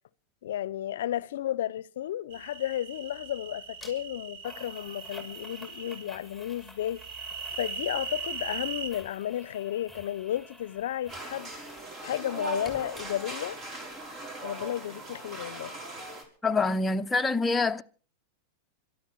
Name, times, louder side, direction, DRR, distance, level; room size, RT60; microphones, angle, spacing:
voice 1, 0.4-7.0 7.6-11.5 12.0-13.6 14.4-15.8, left 12 dB, 75° left, 0.7 m, -33 dB
sound 1, 2.3-6.0 7.0-8.9, right 6 dB, 60° right, 3.6 m, -39 dB
sound 2, 3.8-3.9 4.4-11.9 12.2-13.6 13.9-14.0, left 1 dB, 10° right, 6.3 m, -50 dB
sound 3, 11.1-16.2, right 2 dB, 35° right, 5.1 m, -40 dB
voice 2, 16.4-17.8, left 3 dB, 15° left, 0.9 m, -25 dB
22.5 x 13.0 x 4.7 m
hypercardioid pair, 110°, 0 cm